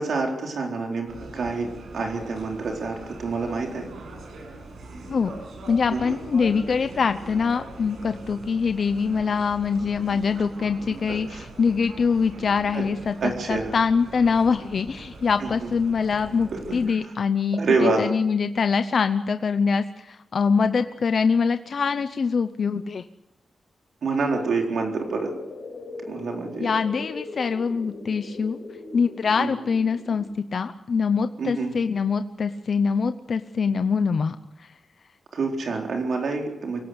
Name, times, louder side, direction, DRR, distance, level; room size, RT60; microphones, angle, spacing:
voice 1, 0.0-1.7 1.9-3.9 5.9-6.2 11.1-11.5 12.7-12.8 13.2-13.7 15.4-15.7 16.5-16.6 17.6-18.1 24.0-25.3 26.1-26.7 29.4-29.5 31.4-31.7 35.3-36.8, right 3 dB, 60° right, 1 dB, 4.1 m, -27 dB
sound 1, 1.1-16.9, right 2 dB, 75° right, 6.8 m, -41 dB
voice 2, 5.7-23.0 26.6-28.6 28.9-30.3 30.5-34.7, left 5 dB, 50° left, 9 dB, 0.8 m, -24 dB
sound 2, 24.9-30.2, left 3 dB, 85° left, 6.6 m, -40 dB
24.5 x 17.5 x 8.1 m, 0.90 s
wide cardioid pair, 160°, 0 cm